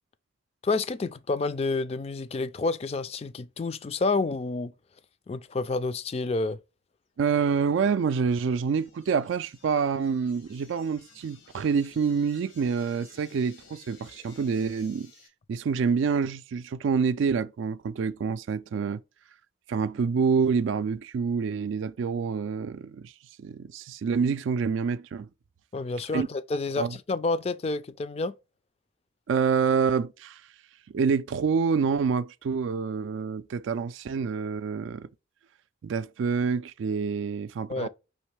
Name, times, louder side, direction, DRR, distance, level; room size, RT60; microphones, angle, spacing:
voice 1, 0.6-4.7 5.3-6.6 25.7-28.3 37.7-37.9, left 3 dB, 30° left, 0.3 m, -29 dB
voice 2, 7.2-15.1 15.5-19.0 19.7-23.1 23.4-25.3 26.1-26.3 26.8-27.0 29.3-30.4 30.9-35.1 35.8-37.9, right 5 dB, 75° right, 0.3 m, -27 dB
sound 1, 7.3-15.3, left 5 dB, 90° left, 1.2 m, -56 dB
5.3 x 3.1 x 3.2 m
head